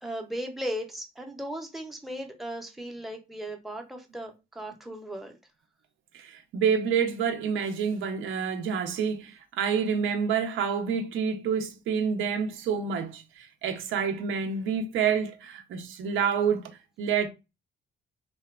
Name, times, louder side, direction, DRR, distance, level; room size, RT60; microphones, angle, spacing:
voice 1, 0.0-5.4, equal, ahead, 0.6 m, -37 dB
voice 2, 6.1-17.3, right 6 dB, 80° right, 0.6 m, -28 dB
2.8 x 2.2 x 2.3 m
cardioid pair, 90°, 20 cm